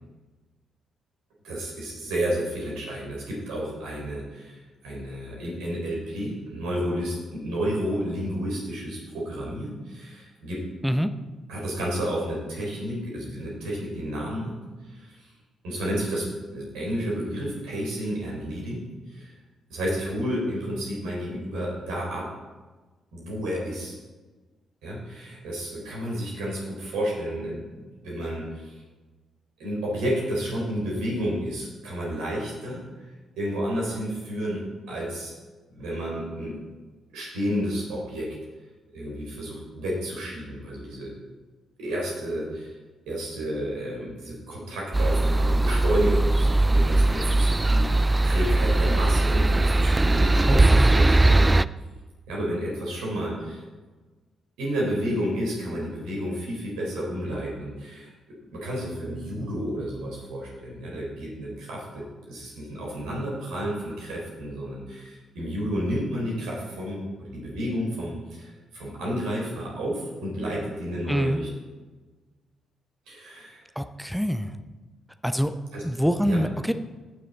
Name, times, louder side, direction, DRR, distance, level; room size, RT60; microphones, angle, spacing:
voice 1, 1.4-10.6 11.5-14.6 14.8-15.3 15.6-16.3 16.5-19.3 19.7-22.3 23.1-23.9 24.8-28.8 29.6-33.1 33.4-34.6 34.9-35.3 35.7-36.6 37.1-38.3 38.9-41.1 41.8-42.7 43.1-51.5 52.3-53.6 54.6-71.7 73.1-73.6 75.7-75.8 76.2-76.4, equal, 70° right, -4 dB, 3.8 m, -31 dB
sound 1, 44.9-51.6, right 2 dB, 20° right, 0.3 m, -20 dB
voice 2, 50.5-51.0 71.1-71.4 73.8-74.5 75.2-75.5 75.8-76.7, equal, ahead, 10 dB, 0.8 m, -25 dB
17.5 x 6.5 x 4.0 m, 1.3 s
figure-of-eight pair, 40°, 0 cm